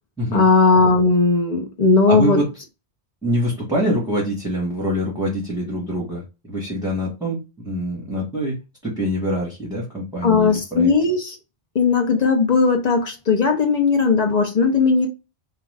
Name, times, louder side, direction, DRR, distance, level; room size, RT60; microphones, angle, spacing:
voice 1, 0.3-2.4 10.2-11.3 11.7-15.1, left 4 dB, 45° left, 0.6 m, -17 dB
voice 2, 2.1-2.5 3.2-8.6 8.8-10.9, equal, 5° right, 1.0 m, -25 dB
2.4 x 2.3 x 3.2 m
omnidirectional pair, 1.1 m